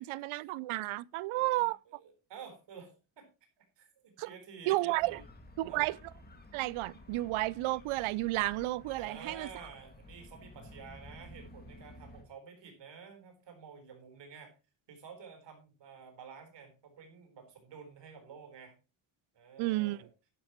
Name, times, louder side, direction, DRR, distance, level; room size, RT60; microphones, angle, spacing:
voice 1, 0.0-1.8 4.2-4.3 4.7-5.2 5.6-6.0 6.5-9.5 19.6-20.0, right 19 dB, 85° right, 0.6 m, -32 dB
voice 2, 1.3-3.3 3.6-5.2 5.7-5.8 8.9-14.5 14.9-18.8 19.3-20.1, right 6 dB, 60° right, 4.2 m, -51 dB
sound 1, 4.9-12.2, left 1 dB, 20° left, 2.0 m, -53 dB
11.5 x 11.0 x 3.0 m
cardioid pair, 155°, 47 cm